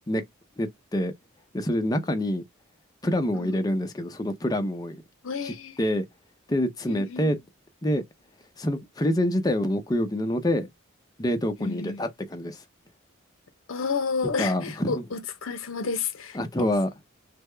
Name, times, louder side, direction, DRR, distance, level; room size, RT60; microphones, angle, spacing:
voice 1, 0.6-1.1 1.5-2.4 3.0-5.0 5.4-6.0 6.5-7.4 7.8-8.0 8.6-10.7 11.2-12.6 14.4-15.0 16.3-16.9, left 1 dB, 20° left, 0.5 m, -26 dB
voice 2, 5.2-5.8 6.9-7.4 11.6-12.0 13.7-16.4, left 5 dB, 70° left, 0.6 m, -31 dB
3.4 x 2.0 x 3.2 m
head